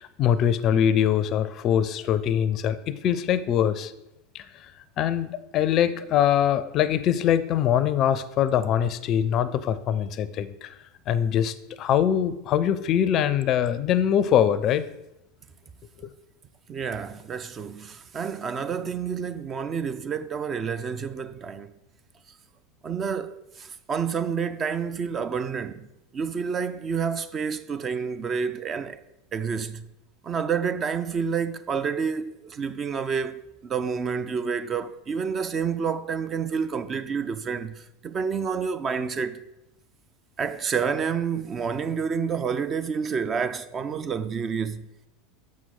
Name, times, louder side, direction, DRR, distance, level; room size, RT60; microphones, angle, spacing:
voice 1, 0.0-3.9 4.3-4.7 5.0-10.7 11.1-14.8, left 9 dB, 45° left, 0.4 m, -23 dB
voice 2, 16.7-21.7 22.8-25.9 26.1-29.0 29.3-29.9 30.2-39.4 40.4-44.9, right 6 dB, 30° right, 0.4 m, -29 dB
7.3 x 6.2 x 4.0 m
hypercardioid pair, 80°, 0 cm